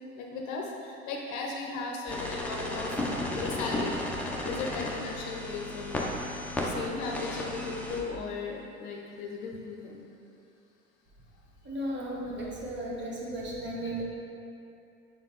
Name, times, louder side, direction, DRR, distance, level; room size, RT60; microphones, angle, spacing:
voice 1, 0.2-3.0 3.3-6.1 6.6-10.0 13.8-13.9, left 4 dB, 45° left, -1 dB, 0.8 m, -36 dB
sound 1, 2.1-8.0, left 1 dB, 5° left, 0.7 m, -34 dB
voice 2, 11.6-14.0, right 1 dB, 25° right, -4 dB, 1.3 m, -35 dB
7.0 x 4.5 x 3.0 m, 2.6 s
figure-of-eight pair, 75°, 41 cm